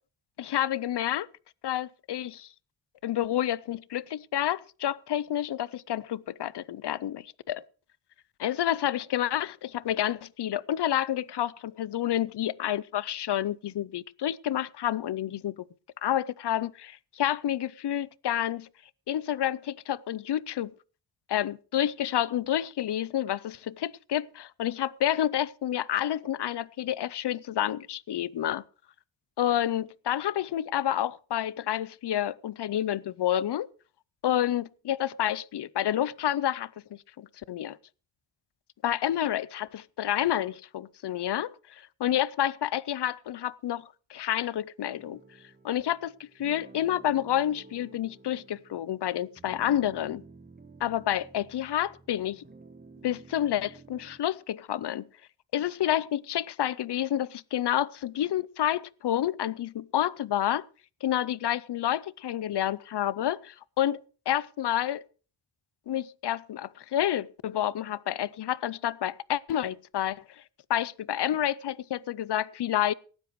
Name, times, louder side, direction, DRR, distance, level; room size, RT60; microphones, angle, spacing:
voice 1, 0.4-1.3 1.6-2.5 3.0-7.6 8.4-15.6 16.0-18.7 19.1-20.7 21.3-28.6 29.4-33.7 34.2-37.8 38.8-45.2 45.6-50.2 50.8-52.4 53.0-55.1 55.5-60.6 61.0-64.0 64.3-65.0 65.9-70.2 70.7-72.9, left 11 dB, 60° left, 0.6 m, -29 dB
sound 1, 45.0-54.2, right 3 dB, 20° right, 1.1 m, -53 dB
18.0 x 12.5 x 3.1 m
wide cardioid pair, 120°, 45 cm